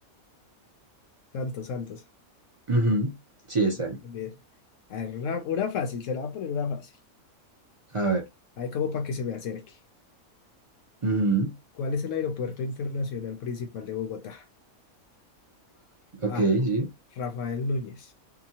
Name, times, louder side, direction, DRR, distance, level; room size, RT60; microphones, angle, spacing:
voice 1, 1.3-2.0 4.0-4.4 4.9-6.9 8.6-9.8 11.8-14.4 16.3-16.5 17.2-18.1, left 5 dB, 65° left, 0.9 m, -31 dB
voice 2, 2.7-3.1 3.5-4.0 7.9-8.2 11.0-11.6 16.2-16.9, right 2 dB, 50° right, 0.4 m, -24 dB
2.9 x 2.2 x 2.8 m
omnidirectional pair, 1.5 m